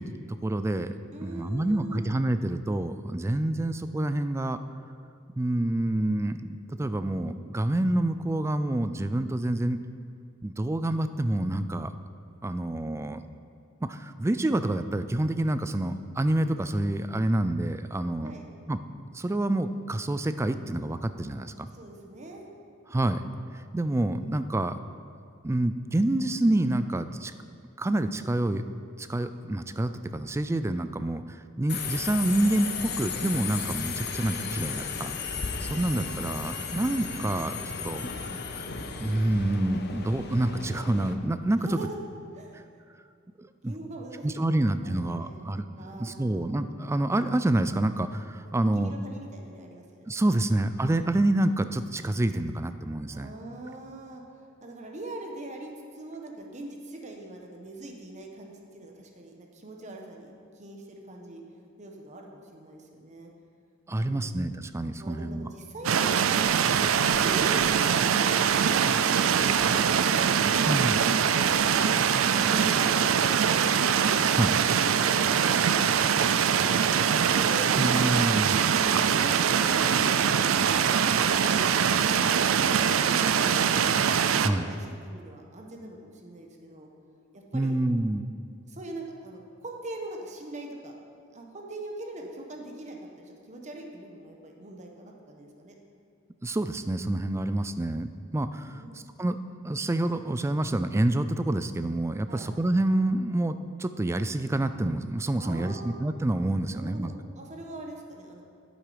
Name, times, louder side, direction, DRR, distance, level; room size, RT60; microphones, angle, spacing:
voice 1, 0.0-0.9 1.2-4.6 5.4-9.8 10.4-11.9 12.4-13.2 13.8-18.3 18.7-18.9 19.1-21.7 22.9-23.2 23.7-24.8 25.4-27.3 27.8-28.6 29.0-35.1 35.6-38.1 38.5-38.6 39.0-41.8 43.4-43.7 44.2-48.9 50.1-53.3 63.9-65.5 70.6-71.0 74.4-74.5 77.8-78.6 84.4-84.6 87.5-88.2 96.4-99.4 99.6-107.1, right 1 dB, 15° right, 11 dB, 0.3 m, -27 dB
voice 2, 1.1-2.1 18.2-18.5 21.4-22.5 35.6-35.9 41.6-41.9 42.3-42.6 43.6-45.5 45.8-46.5 48.4-50.2 53.1-54.2 54.6-61.4 61.8-63.3 64.0-64.3 65.0-66.8 67.2-70.0 70.5-70.8 71.2-73.7 74.7-78.5 79.0-80.8 81.4-83.7 84.1-86.9 87.3-87.8 88.7-90.9 91.3-95.7 98.7-99.2 102.3-102.5 105.3-106.0 106.7-108.4, right 2 dB, 35° right, 1 dB, 1.2 m, -42 dB
Subway metro underground, 31.7-41.1, left 5 dB, 55° left, 0.8 m, -35 dB
sound 1, 65.8-84.5, right 7 dB, 85° right, 0.4 m, -23 dB
11.0 x 8.4 x 5.0 m, 2.3 s
head